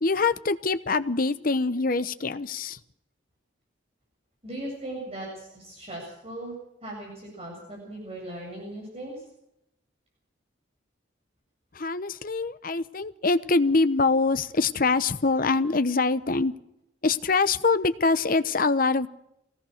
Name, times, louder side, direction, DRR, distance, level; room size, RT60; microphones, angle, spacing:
voice 1, 0.0-2.8 11.8-16.5 17.0-19.1, left 3 dB, 45° left, 0.9 m, -24 dB
voice 2, 4.4-6.5 6.8-9.3, right 1 dB, 30° right, 7.8 m, -38 dB
24.0 x 18.0 x 6.6 m
head